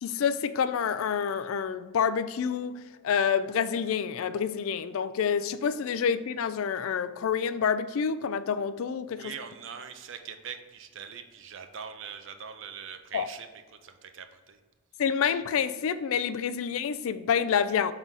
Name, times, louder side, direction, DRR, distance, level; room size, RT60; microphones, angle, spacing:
voice 1, 0.0-9.3 13.1-13.3 15.0-17.9, left 7 dB, 70° left, 0.3 m, -28 dB
voice 2, 9.1-13.5 13.8-14.6, right 7 dB, 60° right, 0.5 m, -42 dB
5.4 x 3.9 x 4.6 m
head